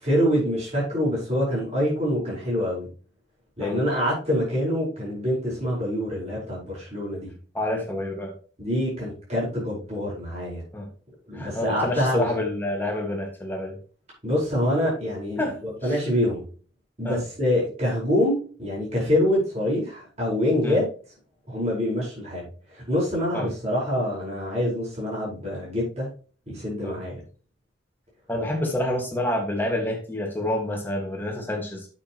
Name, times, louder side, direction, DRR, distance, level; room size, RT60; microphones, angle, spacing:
voice 1, 0.0-2.9 3.6-7.3 8.6-10.6 11.3-12.3 14.2-16.4 17.0-20.8 21.5-26.1 26.5-27.2, left 1 dB, 35° right, -6 dB, 5.0 m, -25 dB
voice 2, 7.5-8.3 10.7-10.9 11.3-13.8 15.4-16.0 17.0-17.2 20.6-20.8 23.3-23.5 26.8-27.0 28.3-31.9, left 1 dB, 10° left, 1 dB, 1.8 m, -28 dB
8.5 x 7.5 x 3.0 m, 0.39 s
head